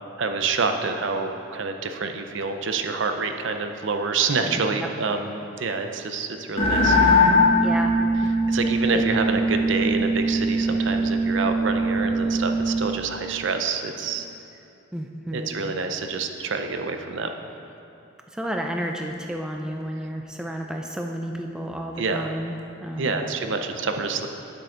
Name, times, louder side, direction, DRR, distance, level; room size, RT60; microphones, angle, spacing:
voice 1, 0.2-7.0 8.5-14.3 15.3-17.3 20.4-20.5 22.0-22.3 23.0-24.3, right 4 dB, 65° right, 6 dB, 0.6 m, -27 dB
voice 2, 4.4-4.9 7.6-7.9 8.9-9.0 14.9-15.6 18.3-23.2, equal, 5° right, 2 dB, 0.4 m, -32 dB
sound 1, 6.6-12.9, equal, 30° left, 1.2 m, -21 dB
9.2 x 7.7 x 3.8 m, 2.7 s
head